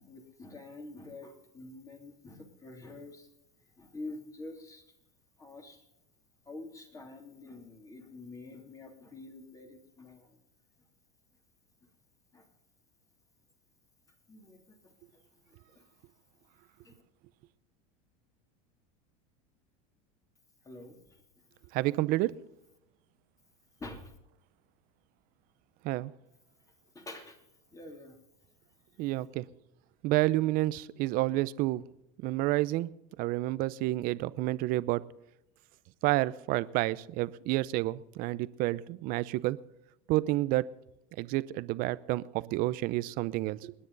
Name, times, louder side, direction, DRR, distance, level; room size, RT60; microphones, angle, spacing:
voice 1, 0.0-3.3 3.8-4.8 5.4-5.8 6.5-10.4 12.3-12.5 14.3-14.8 15.7-15.8 16.8-17.0 20.6-21.0 23.8-24.1 26.9-27.4 27.7-28.2, left 2 dB, 20° left, 4 dB, 3.0 m, -47 dB
voice 2, 21.7-22.3 25.8-26.1 29.0-29.4 30.0-31.8 32.2-32.9 33.2-35.0 36.0-39.6 40.1-40.6 41.2-43.7, right 18 dB, 55° right, 17 dB, 0.7 m, -29 dB
29.0 x 10.0 x 4.0 m, 0.89 s
supercardioid pair, 115°, 17 cm